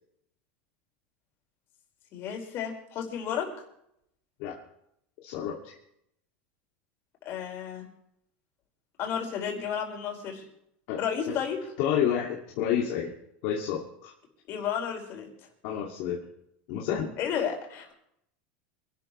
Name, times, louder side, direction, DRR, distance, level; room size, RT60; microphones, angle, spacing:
voice 1, 2.1-3.5 7.3-7.9 9.0-10.4 11.0-11.6 14.5-15.3 17.2-17.9, left 8 dB, 45° left, 1 dB, 5.3 m, -32 dB
voice 2, 5.2-5.7 10.9-11.0 11.3-11.4 11.8-13.1 13.4-14.1 15.6-16.2 16.7-17.1, left 9 dB, 60° left, -2 dB, 2.5 m, -29 dB
26.5 x 12.5 x 3.3 m, 0.74 s
supercardioid pair, 130°, 6 cm